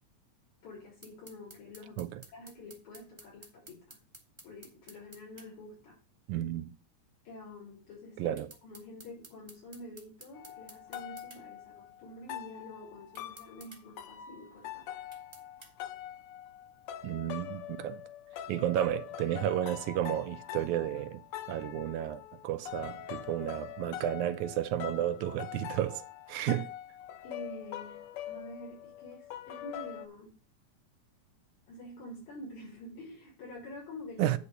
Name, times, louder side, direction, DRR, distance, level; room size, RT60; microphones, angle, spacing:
voice 1, 0.6-4.0 4.4-6.0 7.2-14.9 27.2-30.3 31.7-34.4, left 1 dB, 70° left, 5.3 m, -48 dB
sound 1, 1.0-5.5 8.4-11.4 13.1-13.8 15.1-15.7, right 2 dB, 10° right, 1.4 m, -53 dB
voice 2, 6.3-6.7 8.2-8.5 17.0-18.0 18.5-21.2 21.5-26.7 34.2-34.4, right 12 dB, 85° right, 2.1 m, -32 dB
sound 2, 10.3-30.1, left 11 dB, 90° left, 1.2 m, -44 dB
9.7 x 4.2 x 6.7 m
omnidirectional pair, 3.4 m